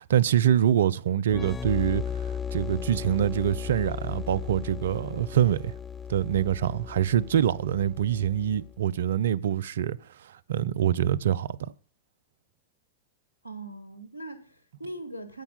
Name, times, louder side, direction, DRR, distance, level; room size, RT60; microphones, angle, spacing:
voice 1, 0.0-5.7 6.1-11.6, right 10 dB, 65° right, 0.5 m, -25 dB
sound 1, 1.3-8.8, left 7 dB, 15° left, 0.5 m, -36 dB
voice 2, 13.4-15.4, right 1 dB, 90° right, 1.5 m, -40 dB
10.0 x 7.0 x 6.9 m
figure-of-eight pair, 90°, 0 cm